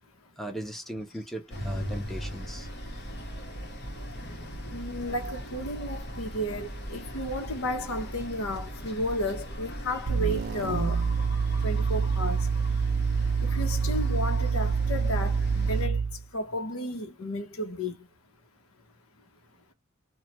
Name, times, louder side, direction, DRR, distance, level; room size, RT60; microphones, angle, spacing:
voice 1, 0.4-2.7, right 1 dB, ahead, 0.6 m, -38 dB
sound 1, 1.5-15.9, equal, 55° left, 1.2 m, -38 dB
voice 2, 4.7-11.1 11.6-12.5 13.4-18.1, left 1 dB, 80° left, 0.8 m, -33 dB
sound 2, 10.1-16.2, right 5 dB, 50° right, 0.4 m, -27 dB
3.1 x 2.2 x 2.9 m
head